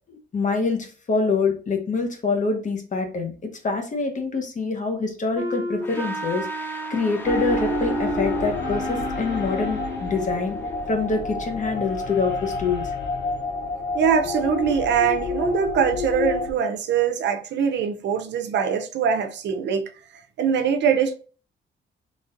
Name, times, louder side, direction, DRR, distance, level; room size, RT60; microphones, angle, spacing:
voice 1, 0.1-3.3 3.6-10.6 10.9-12.8, left 4 dB, 40° left, 1.0 m, -25 dB
Wind instrument woodwind instrument, 5.4-10.2, right 2 dB, 20° right, 0.8 m, -30 dB
sound 1, 5.8-16.7, left 2 dB, 10° left, 0.5 m, -41 dB
sound 2, 7.2-16.5, left 4 dB, 65° left, 0.8 m, -30 dB
voice 2, 13.9-19.9 20.4-21.1, right 7 dB, 70° right, 0.6 m, -22 dB
4.2 x 3.2 x 2.5 m
cardioid pair, 95°, 19 cm